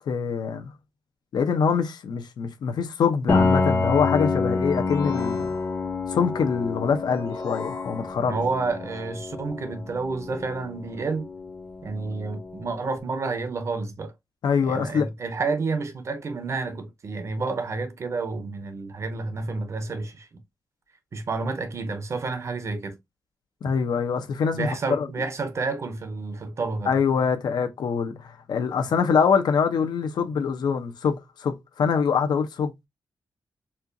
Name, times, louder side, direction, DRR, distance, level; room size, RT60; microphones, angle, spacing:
voice 1, 0.1-0.7 1.3-5.6 6.1-8.4 14.4-15.1 23.6-25.1 26.9-32.9, left 6 dB, 70° left, 0.7 m, -24 dB
Piano, 3.3-12.9, left 3 dB, 25° left, 0.7 m, -28 dB
sound 1, 4.7-6.1 7.1-8.5, left 4 dB, 55° left, 1.1 m, -40 dB
voice 2, 8.3-11.3 11.8-14.1 14.6-20.3 21.1-23.0 24.5-27.0, right 3 dB, 40° right, 0.7 m, -30 dB
4.3 x 2.4 x 2.5 m
wide cardioid pair, 145°, 7 cm